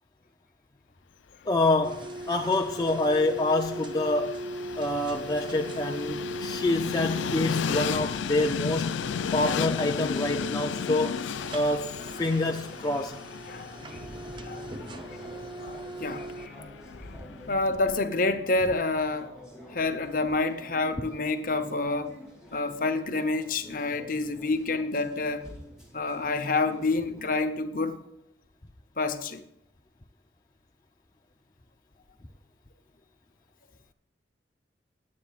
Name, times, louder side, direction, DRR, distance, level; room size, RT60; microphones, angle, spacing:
voice 1, 1.5-4.4 4.8-9.0 9.3-13.2, left 2 dB, 20° left, 0.5 m, -27 dB
Train, 1.7-17.8, left 7 dB, 85° left, 0.4 m, -35 dB
sound 1, 1.8-16.5, right 1 dB, 25° right, 0.7 m, -40 dB
voice 2, 13.5-14.0 14.4-14.6 15.3-16.6 17.5-19.4 19.7-22.1 22.5-25.5 25.9-28.0 29.0-29.4, left 3 dB, 45° left, 0.9 m, -28 dB
sound 2, 13.7-27.4, left 1 dB, ahead, 3.8 m, -48 dB
20.0 x 8.6 x 2.4 m
head